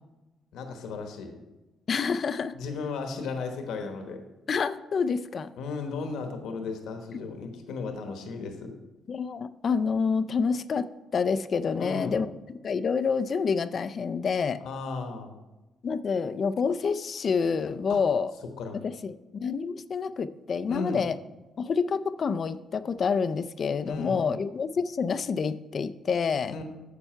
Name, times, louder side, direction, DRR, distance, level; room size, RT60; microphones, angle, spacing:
voice 1, 0.5-1.3 2.5-4.2 5.6-8.7 11.7-12.2 14.6-15.3 17.9-18.0 18.6-18.8 20.7-21.0 23.8-24.2 26.5-26.6, left 4 dB, 85° left, 5 dB, 1.2 m, -35 dB
voice 2, 1.9-2.6 4.5-5.5 9.1-10.9 11.1-12.4 12.6-14.6 15.8-18.3 18.8-21.2 21.6-26.5, left 5 dB, 45° left, 13 dB, 0.4 m, -28 dB
10.0 x 6.7 x 4.5 m, 1.1 s
cardioid pair, 115°, 0 cm